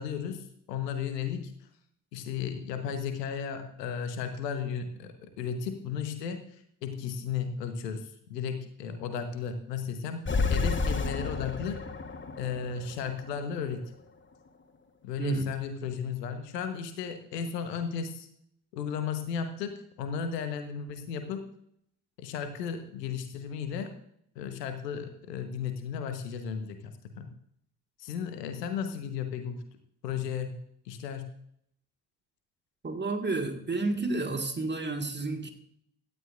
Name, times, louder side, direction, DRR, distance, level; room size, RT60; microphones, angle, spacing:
voice 1, 0.0-1.5 2.1-11.8 12.4-13.9 15.0-18.3 18.7-21.4 22.2-23.9 24.3-26.9 27.2-27.3 28.0-29.6 30.0-30.6 30.8-31.3, left 7 dB, 75° left, 8 dB, 1.3 m, -34 dB
sound 1, 10.2-13.7, left 4 dB, 25° left, 1.3 m, -31 dB
voice 2, 32.8-35.5, right 3 dB, 20° right, 4 dB, 1.9 m, -31 dB
17.0 x 12.0 x 2.5 m, 0.70 s
figure-of-eight pair, 40°, 49 cm